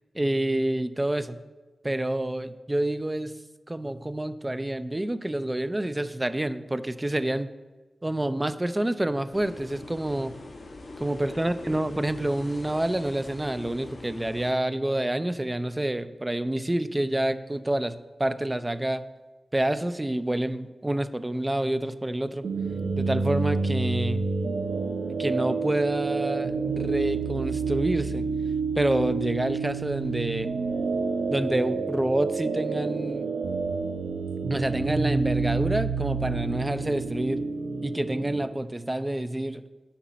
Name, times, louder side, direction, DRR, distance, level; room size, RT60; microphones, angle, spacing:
voice 1, 0.1-1.4 1.8-3.3 3.7-7.5 8.0-10.4 11.0-19.0 19.5-22.4 23.0-24.2 25.2-28.2 28.8-30.5 31.3-33.3 34.5-37.4 37.8-39.6, right 1 dB, 15° right, 12 dB, 0.4 m, -28 dB
sound 1, 9.3-14.5, left 2 dB, 45° left, 1.2 m, -43 dB
sound 2, 22.4-38.5, right 4 dB, 80° right, 0.7 m, -29 dB
10.0 x 4.1 x 7.4 m, 1.2 s
wide cardioid pair, 150°, 0 cm